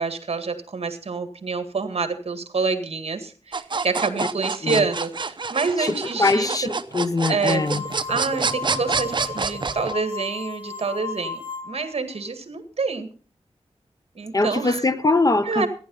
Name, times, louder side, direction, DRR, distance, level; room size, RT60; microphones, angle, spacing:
voice 1, 0.0-6.7 7.3-7.6 8.1-13.1 14.2-14.8 15.4-15.7, right 4 dB, 60° right, 2.0 m, -27 dB
sound 1, 3.5-9.9, right 4 dB, 45° right, 0.8 m, -27 dB
voice 2, 5.8-7.8 14.3-15.7, left 3 dB, 35° left, 0.9 m, -22 dB
sound 2, 7.5-11.9, left 5 dB, 15° right, 2.3 m, -35 dB
15.0 x 10.5 x 5.6 m
wide cardioid pair, 115°, 11 cm